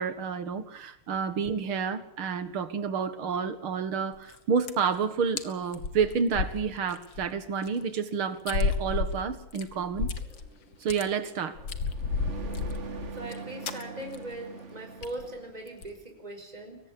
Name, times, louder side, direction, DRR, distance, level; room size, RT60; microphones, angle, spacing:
voice 1, 0.0-10.1 10.8-11.6, right 6 dB, 80° right, 2.6 m, -29 dB
sound 1, 4.1-4.4 4.6-5.0 5.4-5.5 5.7-7.3 7.6-7.7 8.5-10.5 10.7-11.0 11.6-13.4 13.6-13.8 14.1-14.3 14.6-14.7 15.0-15.3 15.7-15.9, left 5 dB, 65° left, 2.2 m, -32 dB
sound 2, 10.2-15.8, right 5 dB, 35° right, 1.7 m, -43 dB
voice 2, 12.4-12.7 13.1-16.8, right 1 dB, 20° right, 5.1 m, -40 dB
23.5 x 18.5 x 8.5 m
omnidirectional pair, 2.3 m